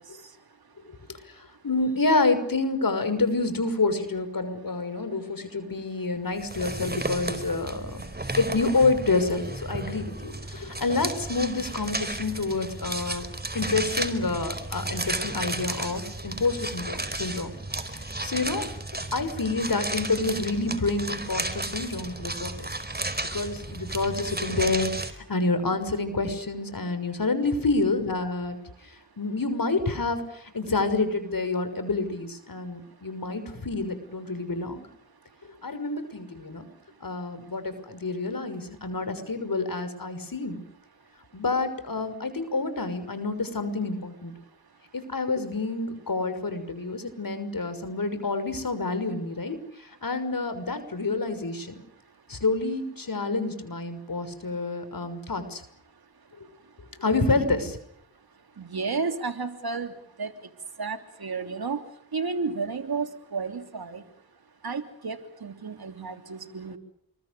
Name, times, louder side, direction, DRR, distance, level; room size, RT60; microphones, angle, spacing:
voice 1, 1.2-8.1 8.4-13.2 13.5-17.5 17.9-18.7 19.1-22.7 23.3-34.8 35.6-36.7 37.0-40.6 41.3-44.3 44.9-51.8 52.3-55.6 56.4-56.5 57.0-57.8, left 3 dB, 60° left, 10 dB, 6.1 m, -28 dB
sound 1, 6.4-25.1, right 2 dB, 25° right, 4.6 m, -33 dB
voice 2, 58.6-59.9 60.2-60.3 60.8-61.8 62.1-64.0 64.6-66.8, right 4 dB, 70° right, 8 dB, 3.2 m, -32 dB
28.5 x 22.5 x 6.8 m, 0.71 s
cardioid pair, 50°, 38 cm